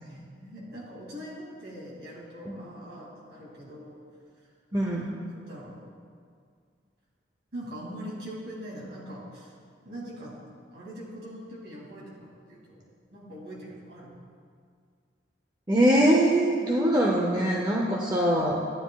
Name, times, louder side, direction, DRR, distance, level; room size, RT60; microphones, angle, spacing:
voice 1, 0.0-4.0 4.9-5.8 7.5-9.5 9.8-10.3 10.7-12.8 13.1-14.1, equal, 65° right, -5 dB, 2.6 m, -42 dB
voice 2, 4.7-5.1 15.7-18.6, right 1 dB, 20° right, -2 dB, 0.6 m, -23 dB
12.0 x 9.5 x 2.4 m, 2.1 s
head